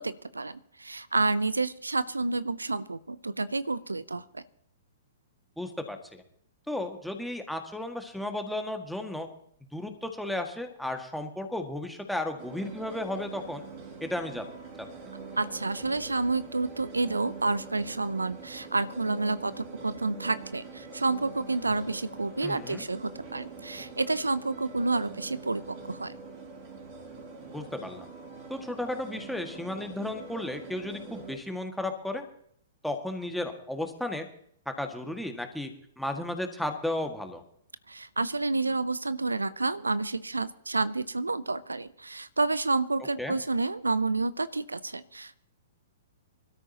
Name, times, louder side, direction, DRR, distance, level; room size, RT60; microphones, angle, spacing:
voice 1, 0.0-4.4 15.4-26.1 37.9-45.4, right 3 dB, 85° right, 17 dB, 0.6 m, -29 dB
voice 2, 5.6-6.2 6.7-9.3 9.7-13.6 14.0-14.5 22.4-22.8 27.5-28.1 28.5-32.3 32.8-34.3 34.7-35.7 36.0-37.4 43.2-43.4, left 1 dB, ahead, 4 dB, 1.8 m, -34 dB
sound 1, 12.4-31.4, right 4 dB, 40° right, 4.4 m, -44 dB
24.5 x 13.0 x 2.9 m, 0.65 s
figure-of-eight pair, 115°, 0 cm